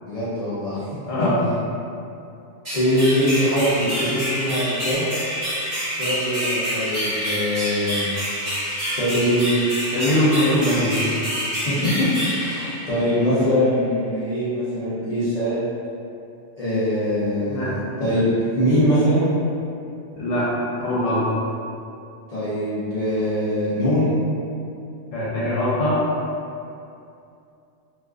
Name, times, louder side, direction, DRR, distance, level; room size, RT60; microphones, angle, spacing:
voice 1, 0.0-0.8 1.2-1.3 2.7-5.1 6.0-8.1 8.8-9.5 11.7-12.1 12.3-15.7 16.6-17.7 18.0-19.3 22.3-24.1, equal, 50° left, -13 dB, 0.4 m, -22 dB
voice 2, 1.1-1.4 9.9-11.0 17.5-17.7 20.2-20.5 20.8-21.3 25.1-26.0, left 1 dB, 80° left, -8 dB, 0.9 m, -21 dB
sound 1, 2.6-13.4, equal, 35° right, 0.9 m, -27 dB
2.4 x 2.3 x 2.3 m, 2.6 s
omnidirectional pair, 1.3 m